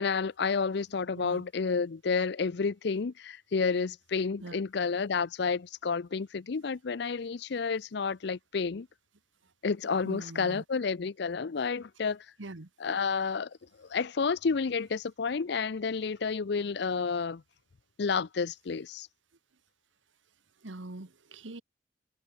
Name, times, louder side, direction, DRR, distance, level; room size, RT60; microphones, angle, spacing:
voice 1, 0.0-8.9 9.6-12.2 12.8-13.5 13.8-17.4 18.0-19.1, left 5 dB, 60° left, 0.5 m, -30 dB
voice 2, 10.0-10.6 12.4-12.7 20.6-21.6, right 2 dB, 90° right, 1.4 m, -43 dB
head